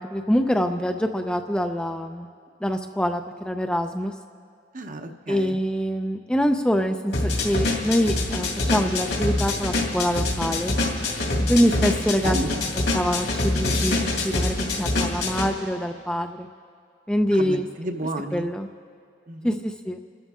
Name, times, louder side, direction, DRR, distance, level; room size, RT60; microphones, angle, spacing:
voice 1, 0.0-2.3 2.6-4.1 5.3-10.8 11.5-12.4 12.9-16.5 17.1-17.7 18.3-18.7 19.4-20.0, equal, 5° left, 5 dB, 0.4 m, -25 dB
voice 2, 4.7-5.6 11.6-11.8 12.2-12.7 17.3-18.5 19.3-19.6, right 1 dB, 45° right, 6 dB, 0.9 m, -32 dB
sound 1, 7.1-15.5, left 2 dB, 70° left, 2.4 m, -25 dB
30.0 x 13.0 x 3.6 m, 2.2 s
head